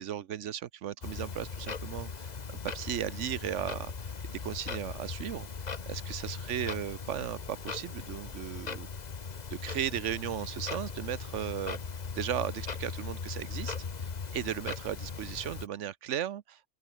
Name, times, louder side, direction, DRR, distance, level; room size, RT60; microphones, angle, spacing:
voice 1, 0.0-2.3 2.7-3.9 4.3-5.5 5.9-8.9 9.5-11.8 12.1-16.7, right 10 dB, 80° right, 1.1 m, -36 dB
Clock, 1.0-15.7, left 5 dB, 40° left, 1.1 m, -39 dB
open air
omnidirectional pair, 1.2 m